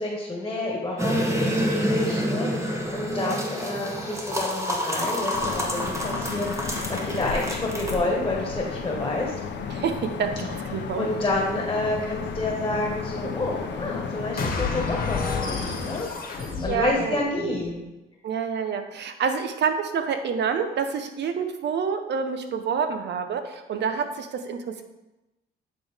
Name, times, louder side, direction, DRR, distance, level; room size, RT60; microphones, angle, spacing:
voice 1, 0.0-9.3 11.0-17.8, left 2 dB, 20° left, -2 dB, 1.5 m, -29 dB
sound 1, 1.0-7.9, equal, 15° right, 1.0 m, -28 dB
sound 2, 5.3-16.0, left 5 dB, 65° left, 0.8 m, -33 dB
voice 2, 9.7-11.1 16.7-17.2 18.2-24.8, right 6 dB, 60° right, 7 dB, 0.8 m, -28 dB
sound 3, 14.4-17.7, left 4 dB, 45° left, 1.3 m, -30 dB
9.2 x 3.8 x 3.5 m, 0.99 s
cardioid pair, 90°, 20 cm